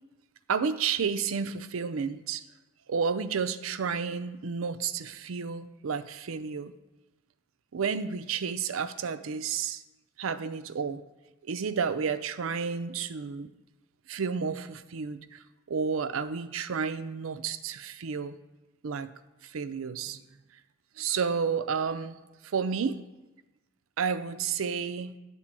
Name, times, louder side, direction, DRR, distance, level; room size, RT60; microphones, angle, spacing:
voice 1, 0.5-2.4 2.9-6.7 7.7-9.8 10.2-11.0 11.4-13.5 14.1-18.4 18.8-19.1 19.4-20.2 21.0-22.2 22.4-23.0 24.0-25.1, right 6 dB, 80° right, 12 dB, 0.5 m, -31 dB
10.0 x 4.2 x 7.4 m, 1.1 s
head